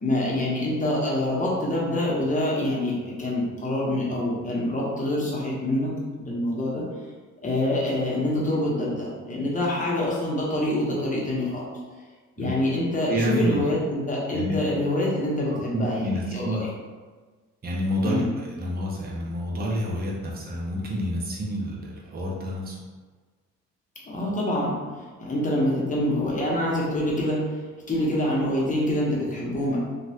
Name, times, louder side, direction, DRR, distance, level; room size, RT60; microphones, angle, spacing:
voice 1, 0.0-5.9 6.2-6.8 7.4-11.7 12.4-16.7 18.0-18.3 24.1-24.8 25.2-27.6 27.9-29.8, left 1 dB, 25° left, -5 dB, 0.9 m, -26 dB
voice 2, 13.1-13.6 14.3-14.6 15.5-16.6 17.6-22.8, equal, 30° right, -3 dB, 0.7 m, -28 dB
2.9 x 2.4 x 2.8 m, 1.4 s
cardioid pair, 90°, 30 cm